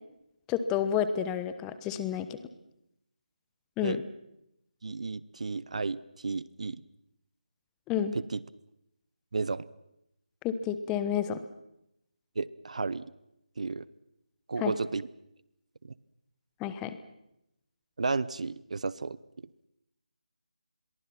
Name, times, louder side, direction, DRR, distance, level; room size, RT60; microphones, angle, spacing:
voice 1, 0.5-2.4 3.8-4.0 7.9-8.2 10.4-11.4 14.6-14.7 16.6-17.0, left 9 dB, 10° left, 12 dB, 1.1 m, -30 dB
voice 2, 4.8-6.8 8.1-8.4 9.3-9.7 12.4-13.0 13.6-13.9 14.5-15.1 15.8-15.9 18.0-19.2, right 4 dB, 60° right, 20 dB, 0.8 m, -33 dB
27.5 x 22.5 x 6.0 m, 0.85 s
figure-of-eight pair, 155°, 4 cm